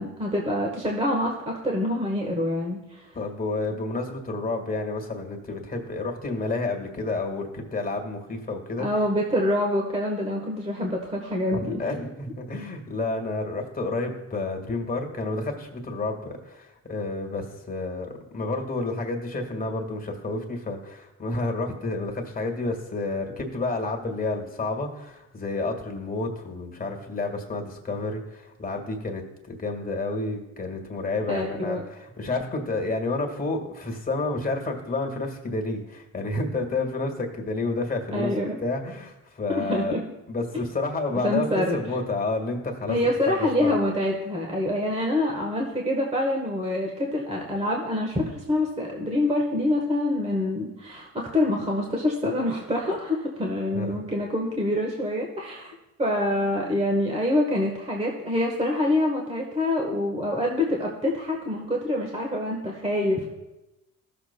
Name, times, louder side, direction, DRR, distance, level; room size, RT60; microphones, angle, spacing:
voice 1, 0.0-3.1 8.8-11.8 31.3-31.8 38.1-38.6 39.5-40.0 41.1-41.8 42.9-63.3, left 1 dB, 20° right, 0 dB, 1.3 m, -26 dB
voice 2, 3.1-8.9 11.5-38.3 38.6-40.0 40.3-41.5 41.7-43.0 43.3-43.7 53.7-54.0, left 2 dB, 30° left, 2 dB, 1.7 m, -30 dB
14.5 x 6.8 x 2.2 m, 0.98 s
cardioid pair, 90°, 30 cm